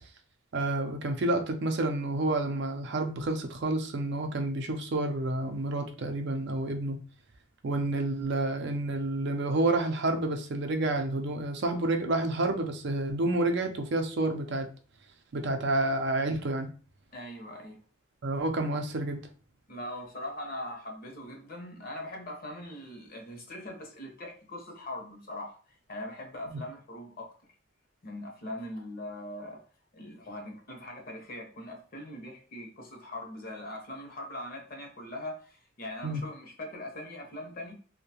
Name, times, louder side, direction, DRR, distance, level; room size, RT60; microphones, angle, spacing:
voice 1, 0.5-7.0 7.6-14.7 15.3-16.7 18.2-19.2 26.5-26.6 36.0-36.2, right 2 dB, 55° right, 0.4 m, -29 dB
voice 2, 17.1-17.8 19.7-25.6 25.9-27.3 28.0-29.6 29.9-37.7, left 1 dB, 45° left, 0.7 m, -41 dB
2.6 x 2.1 x 2.8 m
head